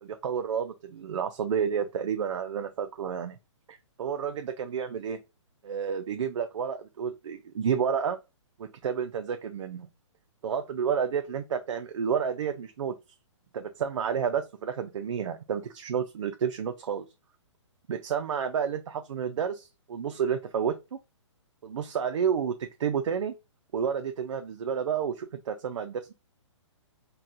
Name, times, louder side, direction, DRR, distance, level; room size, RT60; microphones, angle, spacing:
voice 1, 0.0-3.4 3.7-5.2 5.6-8.2 8.6-9.9 10.4-12.9 13.5-17.1 17.9-21.0 21.6-23.3 23.7-26.1, right 7 dB, 80° right, 0.5 m, -30 dB
4.1 x 2.2 x 2.5 m
hypercardioid pair, 170°, 16 cm